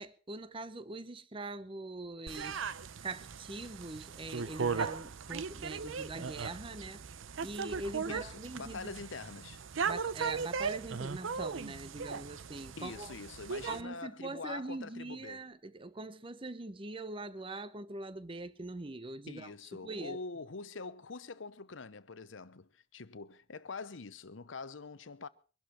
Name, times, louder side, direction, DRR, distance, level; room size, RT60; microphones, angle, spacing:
voice 1, 0.0-2.6 3.0-7.0 7.4-8.9 9.8-13.1 13.7-20.2, right 2 dB, 25° right, 0.8 m, -43 dB
sound 1, 2.3-13.8, right 5 dB, 90° right, 0.7 m, -38 dB
voice 2, 8.1-9.7 12.8-15.5 19.3-25.3, left 4 dB, 80° left, 0.8 m, -45 dB
23.0 x 11.5 x 4.4 m
head